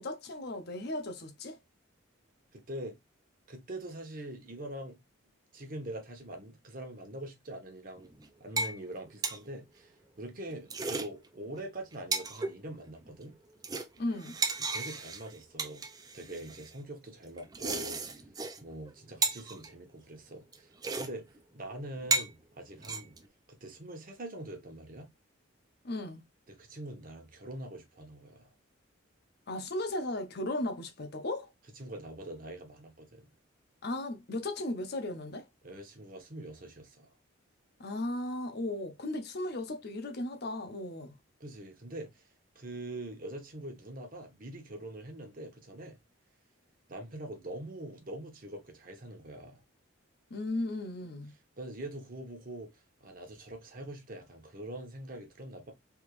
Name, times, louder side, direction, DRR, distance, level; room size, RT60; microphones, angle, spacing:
voice 1, 0.0-1.6 14.0-14.4 25.8-26.2 29.5-31.5 33.8-35.5 37.8-41.2 50.3-51.3, left 1 dB, 50° left, 0.7 m, -36 dB
voice 2, 2.5-3.0 3.5-5.0 5.5-8.1 8.4-13.4 14.6-15.9 16.1-18.2 18.6-21.3 21.5-23.1 23.6-25.1 26.5-28.5 31.7-33.3 35.6-37.1 41.4-42.3 42.5-46.0 46.9-49.6 51.6-52.7 53.0-55.7, right 1 dB, 40° right, 1.0 m, -44 dB
sound 1, 8.0-8.3 8.6-8.8 9.1-9.4 10.5-11.1 11.6-11.7 11.9-12.5 13.1-13.3 13.6-16.7 17.4-18.6 18.9-19.0 19.2-19.7 20.5-20.6 20.8-21.1 21.4-21.5 22.0-22.3 22.8-23.3, right 3 dB, 20° right, 0.4 m, -34 dB
3.5 x 2.9 x 3.0 m
head